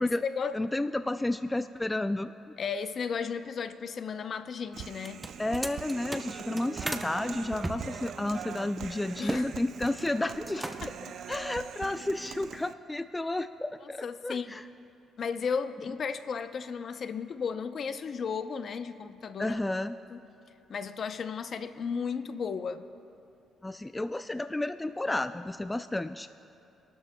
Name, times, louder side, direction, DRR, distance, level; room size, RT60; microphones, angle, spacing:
voice 1, 0.0-0.6 2.6-5.2 9.2-9.5 10.8-10.9 14.0-14.6 15.2-19.6 20.1-20.2 20.7-22.9, left 6 dB, 55° left, 10 dB, 0.6 m, -34 dB
voice 2, 0.5-2.3 5.4-10.6 11.3-14.6 19.4-19.9 23.6-26.3, left 2 dB, 15° left, 11 dB, 0.3 m, -31 dB
Human voice, 4.7-12.7, right 8 dB, 65° right, 0.5 m, -42 dB
sound 1, 5.0-7.1 7.6-9.5 9.7-10.1 10.4-11.0, right 1 dB, 10° right, 0.8 m, -37 dB
29.5 x 12.5 x 2.2 m, 2.7 s
cardioid pair, 90°, 0 cm